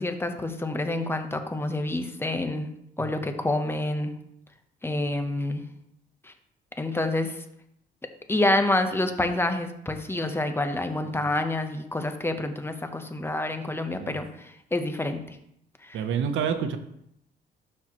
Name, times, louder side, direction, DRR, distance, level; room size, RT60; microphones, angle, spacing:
voice 1, 0.0-2.7 3.0-4.1 4.8-5.6 6.8-7.4 8.3-15.2 15.8-16.0, left 2 dB, 10° left, 7 dB, 0.9 m, -28 dB
voice 2, 15.9-16.8, right 7 dB, 80° right, 8 dB, 0.8 m, -28 dB
12.5 x 4.4 x 3.0 m, 0.74 s
cardioid pair, 90°, 20 cm